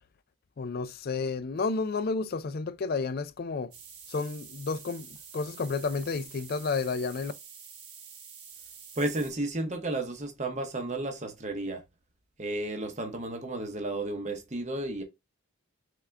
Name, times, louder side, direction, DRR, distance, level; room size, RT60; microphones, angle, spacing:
voice 1, 0.6-3.7 4.1-7.3, left 4 dB, 45° left, 0.3 m, -31 dB
sound 1, 3.7-9.3, right 6 dB, 80° right, 1.2 m, -48 dB
voice 2, 9.0-11.8 12.4-15.0, right 2 dB, 30° right, 0.8 m, -32 dB
3.7 x 3.5 x 3.3 m
head